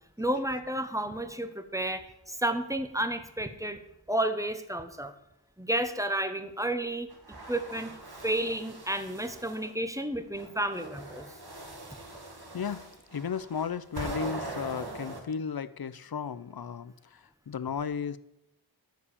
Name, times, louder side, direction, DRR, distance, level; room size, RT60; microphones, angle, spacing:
voice 1, 0.2-3.8 4.1-5.1 5.6-7.1 7.5-8.0 8.2-11.3, right 1 dB, 5° right, 9 dB, 1.1 m, -31 dB
sound 1, 7.1-9.7 10.3-15.2, right 2 dB, 65° right, 2.2 m, -42 dB
voice 2, 12.5-12.9 13.1-18.2, left 6 dB, 60° left, 15 dB, 0.6 m, -34 dB
12.5 x 4.7 x 8.5 m, 0.85 s
wide cardioid pair, 45°, 42 cm